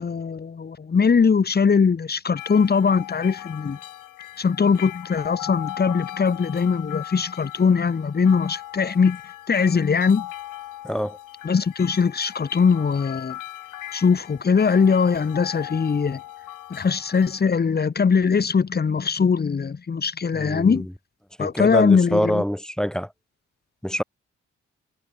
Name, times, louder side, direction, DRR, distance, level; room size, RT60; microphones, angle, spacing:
voice 1, 0.0-3.8 4.4-9.2 9.5-10.3 11.4-13.3 13.9-16.2 16.7-20.9 21.4-22.4, left 5 dB, 30° left, 0.8 m, -21 dB
sound 1, 2.4-17.4, left 14 dB, 85° left, 1.9 m, -38 dB
voice 2, 10.8-11.2 20.3-20.9 21.4-23.1 23.8-24.0, equal, ahead, 0.6 m, -25 dB
supercardioid pair, 45°, 31 cm